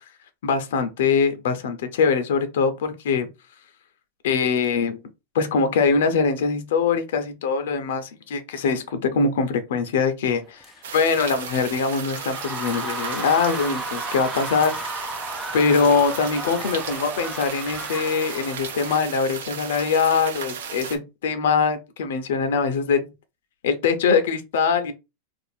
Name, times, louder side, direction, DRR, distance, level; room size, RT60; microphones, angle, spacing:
voice 1, 0.4-3.3 4.2-5.0 5.3-10.6 10.9-15.1 15.5-23.1 23.6-24.9, left 5 dB, 70° left, 0.7 m, -22 dB
sound 1, 10.6-18.9, right 2 dB, 5° right, 0.4 m, -34 dB
sound 2, 10.8-21.0, right 6 dB, 80° right, 0.8 m, -35 dB
2.6 x 2.5 x 4.2 m
supercardioid pair, 165°, 0 cm